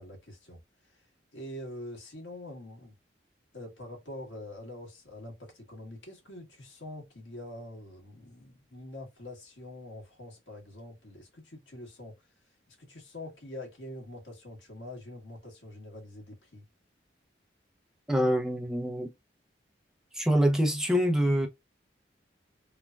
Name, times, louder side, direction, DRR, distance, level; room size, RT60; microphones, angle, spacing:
voice 1, 0.0-2.9 3.5-12.3 12.7-16.6, left 1 dB, 90° left, 1.5 m, -45 dB
voice 2, 18.1-19.1 20.1-21.5, equal, 5° right, 0.5 m, -25 dB
3.1 x 2.2 x 2.3 m
head